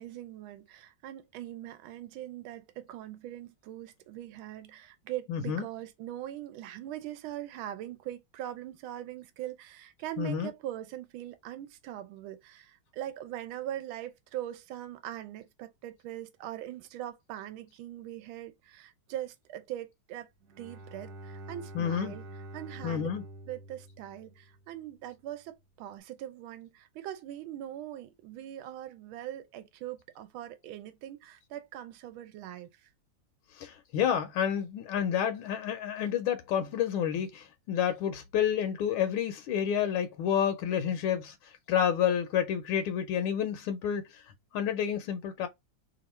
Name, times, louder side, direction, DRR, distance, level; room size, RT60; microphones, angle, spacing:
voice 1, 0.0-20.3 20.6-22.3 22.5-23.1 23.5-32.9, right 12 dB, 85° right, 1.4 m, -41 dB
voice 2, 5.3-5.7 10.2-10.5 21.7-22.2 22.8-23.2 33.6-44.2 44.5-45.5, left 9 dB, 80° left, 1.4 m, -29 dB
Bowed string instrument, 20.4-24.9, right 1 dB, 60° right, 1.2 m, -47 dB
3.4 x 2.5 x 4.2 m
omnidirectional pair, 2.2 m